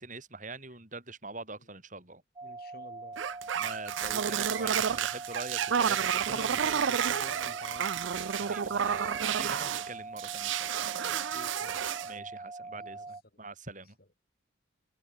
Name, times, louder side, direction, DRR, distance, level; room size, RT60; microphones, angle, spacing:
voice 1, 0.0-2.2 3.5-6.3 6.6-6.7 8.3-10.9 12.0-14.0, right 3 dB, 40° right, 6.5 m, -44 dB
voice 2, 2.4-3.2 6.3-8.0 11.0-11.8 12.1-12.3 12.8-13.1 13.3-13.4, left 1 dB, 50° left, 3.8 m, -49 dB
sound 1, 2.4-13.2, right 3 dB, 20° right, 0.7 m, -43 dB
sound 2, 3.2-9.9 10.2-12.1, right 8 dB, 70° right, 0.5 m, -30 dB
head